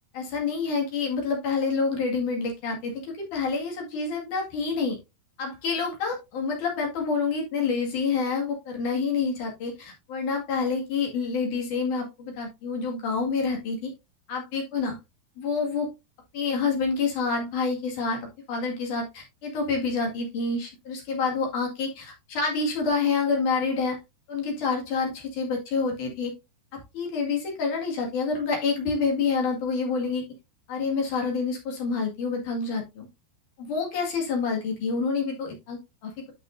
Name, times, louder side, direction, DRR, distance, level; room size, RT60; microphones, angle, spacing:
voice 1, 0.1-5.0 5.4-13.9 14.3-14.9 15.4-15.9 16.3-24.0 24.3-26.3 26.7-30.2 30.7-33.1 33.6-36.1, left 4 dB, 50° left, 1 dB, 2.7 m, -28 dB
11.5 x 5.7 x 2.6 m, 0.24 s
omnidirectional pair, 5.9 m